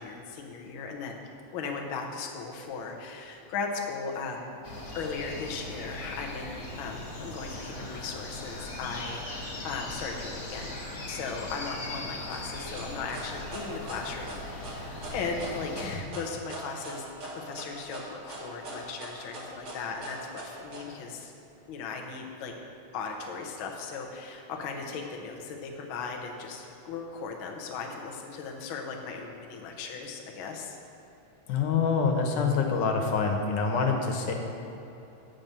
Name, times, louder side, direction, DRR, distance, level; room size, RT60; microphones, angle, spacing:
voice 1, 0.0-4.5 4.9-10.7 11.0-21.3 21.7-22.5 22.9-30.8, left 4 dB, 65° left, 1 dB, 1.3 m, -37 dB
sound 1, 4.6-16.0, left 1 dB, 40° left, 1.1 m, -39 dB
sound 2, 12.3-20.8, right 2 dB, 50° right, 2.6 m, -41 dB
voice 2, 31.5-34.3, left 5 dB, 90° left, 2 dB, 2.5 m, -26 dB
8.9 x 6.0 x 6.6 m, 3.0 s
omnidirectional pair, 3.4 m